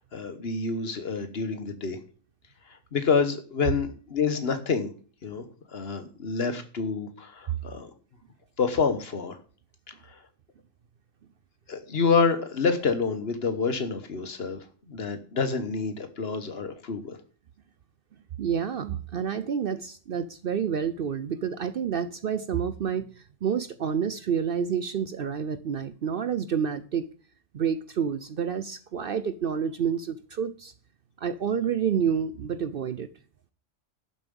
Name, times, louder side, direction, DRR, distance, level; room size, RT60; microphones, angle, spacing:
voice 1, 0.1-2.0 2.7-4.9 5.2-5.4 5.7-7.9 8.6-9.4 10.1-10.2 11.7-17.2, left 5 dB, 55° left, 9 dB, 1.4 m, -28 dB
voice 2, 18.4-27.1 27.5-30.7 31.2-33.1, right 7 dB, 55° right, 13 dB, 0.7 m, -29 dB
12.0 x 7.2 x 5.4 m, 0.41 s
omnidirectional pair, 1.3 m